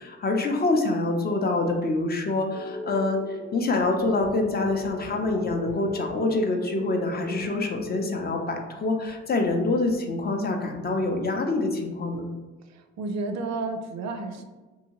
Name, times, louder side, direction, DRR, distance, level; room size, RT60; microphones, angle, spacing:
voice 1, 0.0-3.2 3.5-12.3, left 2 dB, 30° left, 3 dB, 0.4 m, -26 dB
sound 1, 2.5-8.3, equal, 90° left, 0.7 m, -39 dB
woobely sound, 3.8-6.2 6.8-7.0 7.4-7.7 9.0-9.6 9.9-10.1, right 2 dB, 15° right, 0.5 m, -46 dB
voice 2, 12.6-14.4, right 3 dB, 65° right, 7 dB, 0.4 m, -32 dB
2.7 x 2.6 x 2.9 m, 1.2 s
cardioid pair, 90°, 30 cm